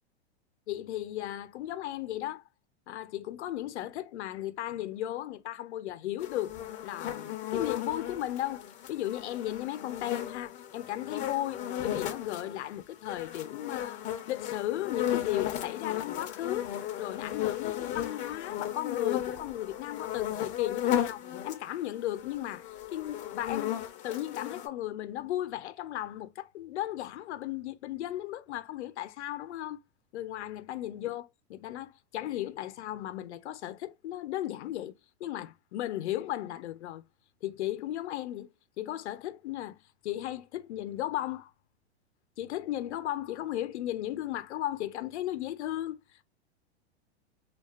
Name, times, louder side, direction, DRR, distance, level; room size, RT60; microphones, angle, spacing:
voice 1, 0.7-2.4 2.9-6.6 6.8-14.0 14.3-16.7 17.0-23.8 24.0-29.8 30.1-37.0 37.4-38.5 38.8-41.5 42.4-46.0, left 13 dB, 80° left, 0.5 m, -35 dB
sound 1, 6.2-12.7 13.1-21.7 22.0-24.7, left 11 dB, 25° left, 0.4 m, -35 dB
2.4 x 2.2 x 2.3 m
hypercardioid pair, 120°, 34 cm